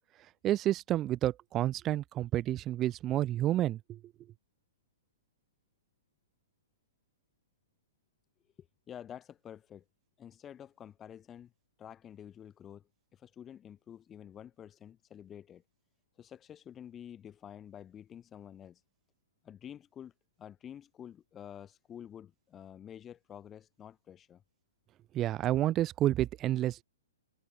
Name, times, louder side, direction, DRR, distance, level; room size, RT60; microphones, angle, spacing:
voice 1, 0.4-4.0 25.1-26.8, right 13 dB, 20° right, 0.7 m, -30 dB
voice 2, 8.6-9.8 10.2-11.5 11.8-15.6 16.2-18.8 19.4-20.1 20.4-24.4, left 9 dB, 15° left, 6.6 m, -49 dB
hypercardioid pair, 165°, 0 cm